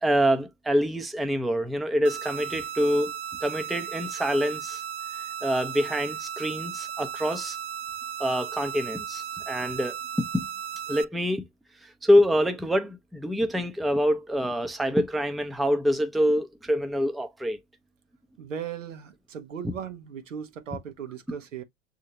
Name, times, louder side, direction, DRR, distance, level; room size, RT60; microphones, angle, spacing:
voice 1, 0.0-3.1 3.4-4.8 5.1-7.6 8.2-10.5 10.9-11.4 11.8-17.6, equal, ahead, 0.5 m, -26 dB
sound 1, 2.0-11.0, right 8 dB, 60° right, 0.5 m, -36 dB
voice 2, 18.4-21.6, right 7 dB, 85° right, 0.9 m, -37 dB
6.3 x 2.7 x 2.8 m
hypercardioid pair, 90°, 37 cm